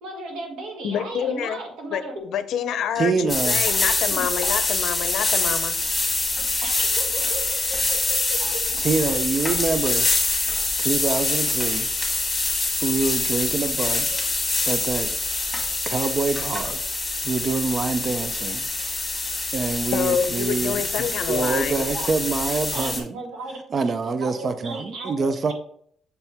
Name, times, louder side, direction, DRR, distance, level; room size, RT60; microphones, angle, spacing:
voice 1, 0.0-2.1 2.7-2.8 6.6-8.6 9.0-9.2 20.6-20.9 21.9-22.1 22.7-23.6 24.2-25.5, right 2 dB, 85° right, 1 dB, 1.7 m, -36 dB
voice 2, 0.8-1.6 1.9-5.7 19.9-21.8, left 8 dB, 75° left, 11 dB, 0.5 m, -27 dB
voice 3, 3.0-3.6 8.8-10.0 10.8-11.9 12.8-14.2 14.6-15.1 15.9-16.8 17.2-18.7 19.5-23.1 23.7-25.5, right 4 dB, 45° right, 10 dB, 0.5 m, -25 dB
sound 1, 3.3-23.0, left 3 dB, 15° left, 2.2 m, -25 dB
6.7 x 4.4 x 3.4 m, 0.65 s
cardioid pair, 90°, 0 cm